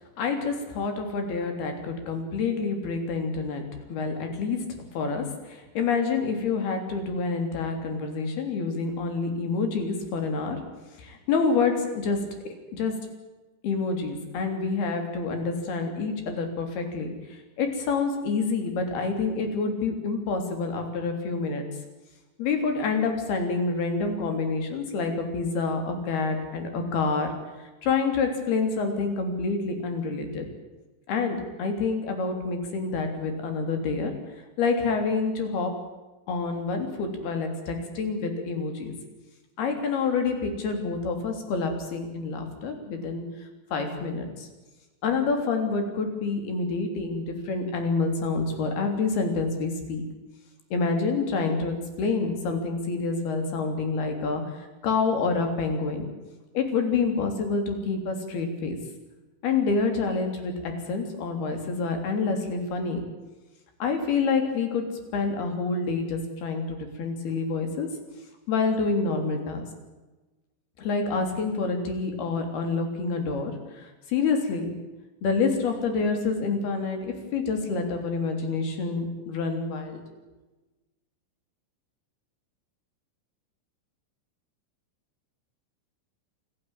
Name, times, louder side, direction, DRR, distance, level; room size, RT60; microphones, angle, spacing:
voice 1, 0.2-10.7 11.0-12.9 13.6-21.7 22.4-30.5 31.1-34.1 34.6-35.8 36.3-38.9 39.6-44.5 45.0-50.0 50.7-56.1 56.5-58.8 59.4-63.1 63.8-67.9 68.5-69.7 70.8-74.7 75.2-80.0, left 4 dB, 50° left, 5 dB, 4.9 m, -28 dB
27.5 x 13.0 x 9.0 m, 1.1 s
omnidirectional pair, 6.0 m